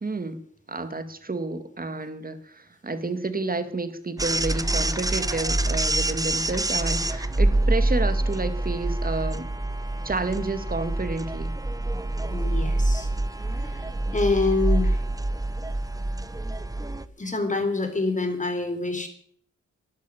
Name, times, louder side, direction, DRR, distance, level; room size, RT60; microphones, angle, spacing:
voice 1, 0.0-0.4 0.7-9.5 10.0-11.5, right 3 dB, 30° right, 10 dB, 2.2 m, -30 dB
sound 1, 4.2-17.1, right 2 dB, 10° right, 1.0 m, -26 dB
voice 2, 12.3-13.1 13.4-15.1 15.4-16.2 17.2-19.1, left 3 dB, 25° left, 7 dB, 4.1 m, -27 dB
12.0 x 11.5 x 9.9 m, 0.63 s
cardioid pair, 75°, 29 cm